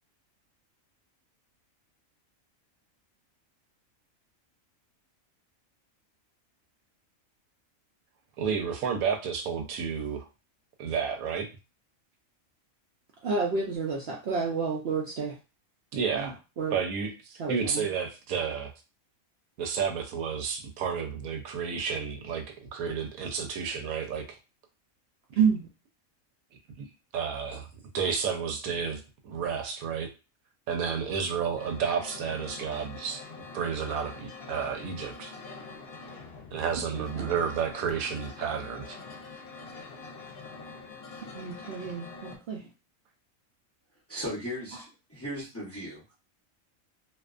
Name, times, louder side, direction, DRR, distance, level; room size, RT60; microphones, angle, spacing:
voice 1, 8.4-10.3 10.8-11.5 15.9-16.3 16.7-18.7 19.6-22.4 22.7-24.4 26.8-26.9 27.1-27.7 27.9-30.1 30.7-33.2 33.5-35.3 36.5-39.0, right 6 dB, 85° right, 5 dB, 1.0 m, -31 dB
voice 2, 13.2-15.3 16.1-16.3 16.6-16.8 17.4-17.9 25.4-25.7 36.9-37.3 41.3-42.6, right 5 dB, 65° right, -1 dB, 0.6 m, -29 dB
sound 1, 31.6-42.4, left 4 dB, 60° left, 0.7 m, -45 dB
voice 3, 44.1-46.0, equal, 15° left, -6 dB, 0.5 m, -37 dB
2.6 x 2.2 x 2.4 m, 0.30 s
omnidirectional pair, 1.4 m